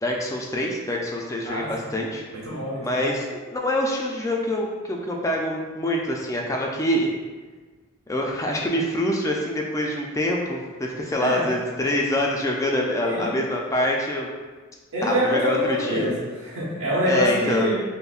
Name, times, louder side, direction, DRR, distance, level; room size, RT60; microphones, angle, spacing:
voice 1, 0.0-2.2 2.8-7.1 8.1-14.3 15.0-16.1 17.0-17.7, left 1 dB, 15° left, -1 dB, 0.3 m, -25 dB
voice 2, 2.3-3.1 11.2-11.5 13.0-13.4 14.9-17.7, equal, 70° right, -8 dB, 1.1 m, -25 dB
5.3 x 2.1 x 2.3 m, 1.4 s
head